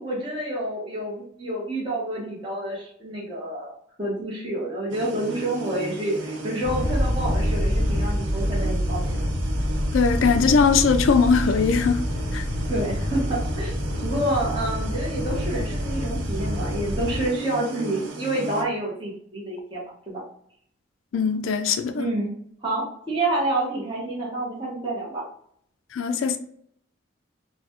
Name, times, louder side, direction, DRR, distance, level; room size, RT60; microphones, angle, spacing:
voice 1, 0.0-3.7 4.0-9.2 12.7-13.8 14.0-20.2 21.9-22.3 22.6-25.2, right 1 dB, 25° right, 0.9 m, -28 dB
sound 1, 4.9-18.6, right 2 dB, 70° right, 0.7 m, -36 dB
sound 2, 6.6-17.3, equal, 45° left, 0.7 m, -26 dB
voice 2, 9.9-12.0 12.3-12.4 21.1-22.1 25.9-26.4, left 5 dB, 80° left, 0.3 m, -20 dB
3.9 x 2.2 x 2.9 m
head